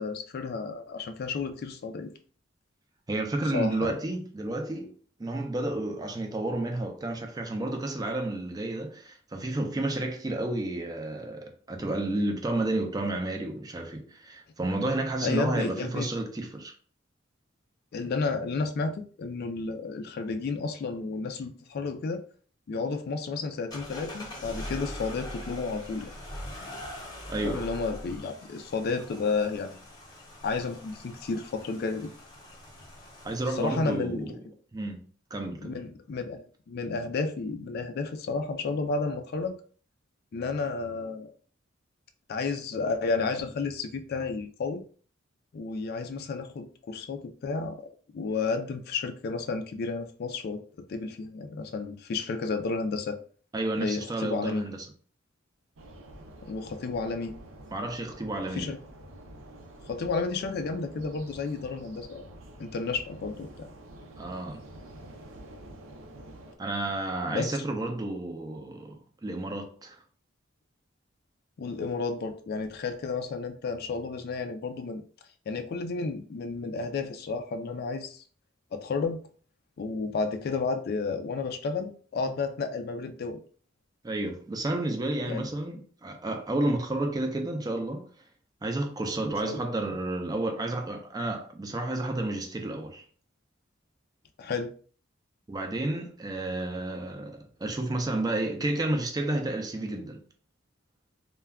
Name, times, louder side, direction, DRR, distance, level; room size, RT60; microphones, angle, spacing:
voice 1, 0.0-2.1 3.5-4.0 15.2-16.1 17.9-22.2 22.7-26.1 27.4-29.8 30.4-32.1 33.5-34.3 35.6-39.6 40.3-41.3 42.3-44.8 45.5-47.8 48.1-50.6 50.9-53.2 53.8-54.6 56.4-57.3 58.5-58.8 59.9-62.2 62.6-63.7 67.3-67.6 71.6-75.0 75.5-78.2 78.7-79.2 79.8-83.4 85.2-85.5 89.4-89.6 94.4-94.7, left 4 dB, 50° left, 0.3 m, -32 dB
voice 2, 3.1-4.9 5.2-16.7 27.3-27.6 33.2-34.4 34.7-35.0 35.3-35.8 53.5-54.8 57.7-58.7 64.2-64.6 66.6-70.0 84.0-88.1 88.6-93.0 95.5-100.2, right 2 dB, 20° right, 0.4 m, -31 dB
sound 1, 23.7-33.9, left 1 dB, 20° left, 0.7 m, -42 dB
sound 2, 55.8-66.5, right 1 dB, 90° right, 0.5 m, -48 dB
2.2 x 2.2 x 3.4 m
head